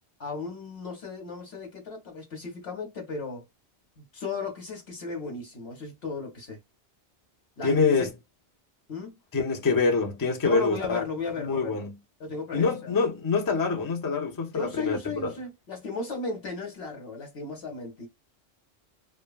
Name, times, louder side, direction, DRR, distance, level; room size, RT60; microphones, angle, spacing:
voice 1, 0.2-3.4 4.0-6.6 7.6-8.1 8.9-9.1 10.4-11.9 12.2-13.0 14.5-18.1, left 4 dB, 65° left, 1.1 m, -35 dB
voice 2, 7.6-8.1 9.3-11.0 11.4-12.0 12.5-15.3, left 4 dB, 30° left, 0.4 m, -25 dB
3.0 x 2.2 x 2.3 m
omnidirectional pair, 1.2 m